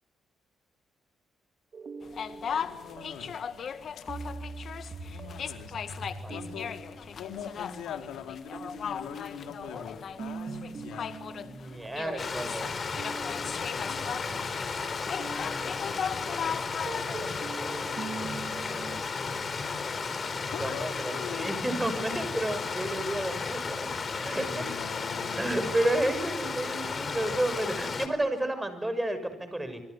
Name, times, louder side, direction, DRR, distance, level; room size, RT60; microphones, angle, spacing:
sound 1, 1.7-19.0, right 4 dB, 45° right, 3.1 m, -44 dB
sound 2, 2.0-17.4, left 7 dB, 55° left, 1.8 m, -38 dB
voice 1, 2.5-3.4 4.0-4.1 5.1-5.8 6.1-6.7 7.2-11.3 13.3-14.1 20.5-21.6 24.2-25.7, left 8 dB, 85° left, 5 dB, 4.1 m, -42 dB
voice 2, 11.5-12.7 20.6-23.9 24.2-24.7 25.4-29.8, right 1 dB, 10° right, 11 dB, 6.5 m, -31 dB
Stream, 12.2-28.1, left 4 dB, 40° left, 3.9 m, -34 dB
27.0 x 25.5 x 8.1 m, 0.96 s
cardioid pair, 90°, 0 cm